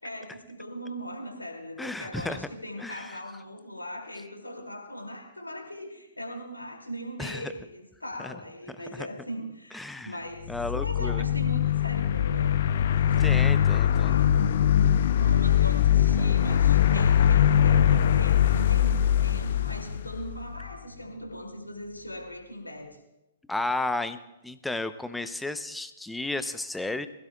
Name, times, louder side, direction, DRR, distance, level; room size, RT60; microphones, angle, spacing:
voice 1, 0.0-12.6 13.0-14.3 15.2-23.0, equal, 85° left, 2 dB, 2.7 m, -39 dB
voice 2, 1.8-2.4 2.8-3.1 7.2-7.5 8.2-8.3 9.7-10.1 10.5-11.2 13.2-14.1 23.5-24.2 24.4-27.1, left 2 dB, 5° left, 11 dB, 0.7 m, -33 dB
sound 1, 10.4-20.7, left 9 dB, 55° left, 0.7 m, -22 dB
21.5 x 16.0 x 2.3 m, 0.95 s
figure-of-eight pair, 115°, 0 cm